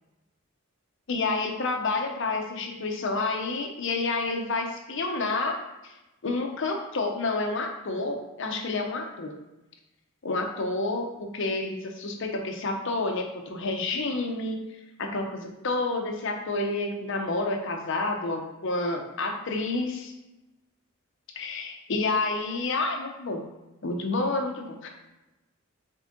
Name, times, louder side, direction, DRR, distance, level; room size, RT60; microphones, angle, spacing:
voice 1, 1.1-5.6 5.8-5.9 6.2-9.3 10.2-14.6 15.0-20.1 21.3-23.4 23.8-24.9, left 3 dB, 65° left, 3 dB, 0.7 m, -29 dB
3.9 x 3.7 x 3.7 m, 0.99 s
head